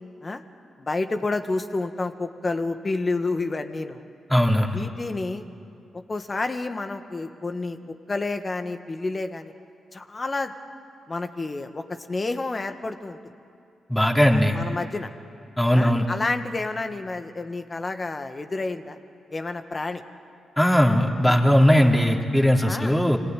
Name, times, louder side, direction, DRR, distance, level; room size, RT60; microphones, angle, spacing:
voice 1, 0.8-4.1 4.7-5.5 5.9-7.8 8.1-9.5 9.9-10.5 11.1-13.2 14.3-15.1 15.7-19.0 19.3-20.0 20.7-20.8 22.6-23.0, left 3 dB, 40° left, 7 dB, 1.9 m, -29 dB
voice 2, 4.3-4.8 13.9-14.6 15.6-16.0 20.6-23.2, equal, 10° left, 1 dB, 3.6 m, -19 dB
26.0 x 18.5 x 9.4 m, 2.4 s
hypercardioid pair, 40°, 0 cm